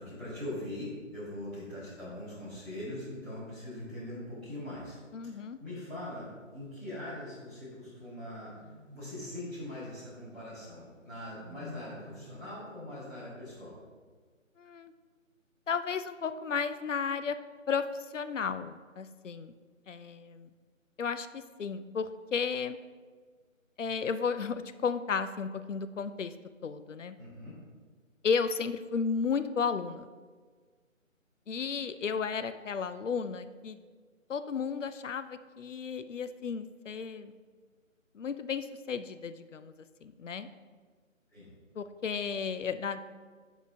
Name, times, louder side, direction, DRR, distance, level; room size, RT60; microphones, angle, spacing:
voice 1, 0.0-5.0 5.2-8.5 8.9-13.8 27.2-27.6 41.3-41.5, left 1 dB, ahead, -18 dB, 1.8 m, -42 dB
voice 2, 5.1-5.6 14.6-14.9 15.7-17.4 17.7-19.5 19.9-20.5 21.0-22.8 23.8-26.3 26.6-27.2 28.2-30.1 31.5-33.8 34.3-37.3 38.1-39.7 40.0-40.5 41.8-43.0, left 6 dB, 65° left, 11 dB, 0.5 m, -33 dB
sound 1, 6.1-6.9 8.2-9.5 10.9-12.5, left 2 dB, 35° right, 1.3 m, -51 dB
9.4 x 4.9 x 2.6 m, 1.5 s
figure-of-eight pair, 155°, 40 cm